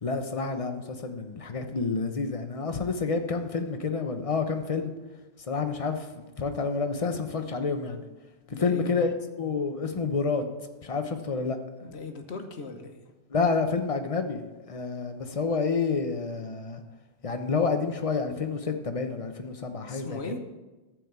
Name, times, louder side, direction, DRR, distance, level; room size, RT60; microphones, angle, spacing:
voice 1, 0.0-4.9 5.5-8.0 8.5-9.1 9.4-10.4 10.8-11.6 13.3-16.8 17.2-20.2, left 4 dB, 35° left, 7 dB, 0.9 m, -29 dB
voice 2, 8.5-9.1 11.8-13.1 19.8-20.4, left 3 dB, 75° left, 6 dB, 1.4 m, -39 dB
13.0 x 4.8 x 8.1 m, 1.1 s
omnidirectional pair, 1.1 m